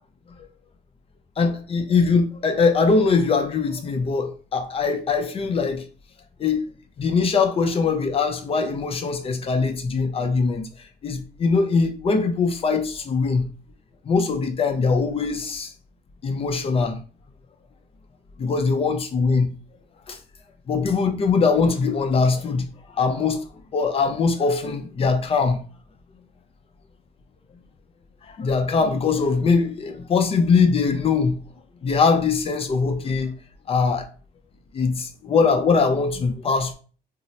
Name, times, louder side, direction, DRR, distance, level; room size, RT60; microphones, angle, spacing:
voice 1, 1.4-5.8 6.4-6.7 7.0-13.5 14.0-15.7 16.2-17.0 18.4-19.5 20.1-20.2 20.7-22.7 22.9-23.4 23.7-25.6 28.2-31.4 31.8-33.3 33.7-34.1 34.7-36.7, left 4 dB, 35° left, 0.5 m, -22 dB
2.8 x 2.0 x 3.9 m
cardioid pair, 110°, 17 cm